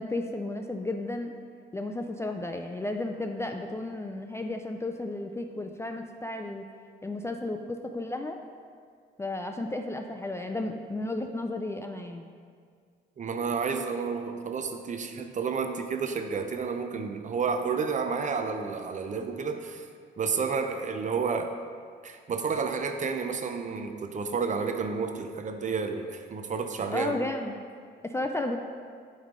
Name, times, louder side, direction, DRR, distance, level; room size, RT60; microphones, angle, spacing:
voice 1, 0.0-1.3 1.7-6.6 7.0-8.4 9.2-12.3 26.9-27.5 28.0-28.6, left 2 dB, 15° left, 4 dB, 0.3 m, -33 dB
voice 2, 13.2-19.9 20.2-21.5 22.0-27.2, right 5 dB, 40° right, 6 dB, 0.5 m, -31 dB
8.9 x 3.2 x 3.7 m, 2.1 s
cardioid pair, 90°, 20 cm